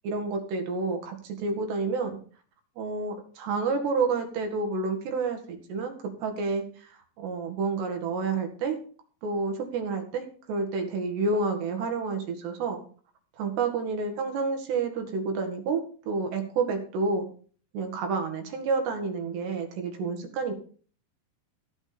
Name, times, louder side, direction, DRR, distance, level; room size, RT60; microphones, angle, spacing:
voice 1, 0.1-2.2 2.8-6.6 7.2-8.8 9.2-12.8 13.4-17.3 17.7-20.5, right 4 dB, 85° right, 4 dB, 4.3 m, -29 dB
15.5 x 6.4 x 7.0 m, 0.42 s
omnidirectional pair, 4.8 m